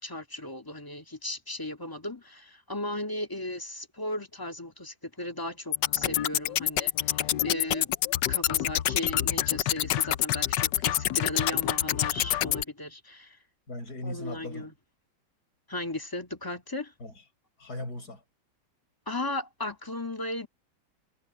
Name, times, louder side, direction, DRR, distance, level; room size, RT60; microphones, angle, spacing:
voice 1, 0.0-7.9 8.3-13.4 14.0-14.7 15.7-16.9 19.1-20.5, left 1 dB, 10° left, 2.0 m, -36 dB
sound 1, 5.7-12.6, left 13 dB, 70° left, 1.2 m, -27 dB
voice 2, 13.7-14.7 17.0-17.1 17.6-18.2, left 1 dB, 50° left, 8.4 m, -38 dB
omnidirectional pair, 2.1 m